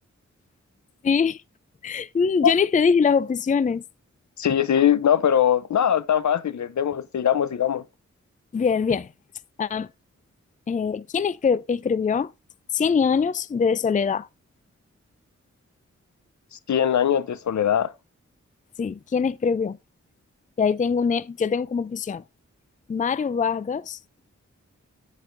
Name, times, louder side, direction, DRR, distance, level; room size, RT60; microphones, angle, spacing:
voice 1, 1.0-1.4 1.8-3.8 8.5-9.1 9.6-9.9 10.7-12.3 12.7-14.3 18.8-19.8 20.6-22.2 22.9-24.0, left 6 dB, 25° left, 0.4 m, -23 dB
voice 2, 4.4-7.8 16.7-17.9, left 9 dB, 70° left, 0.7 m, -21 dB
9.2 x 7.8 x 2.6 m
cardioid pair, 40°, 30 cm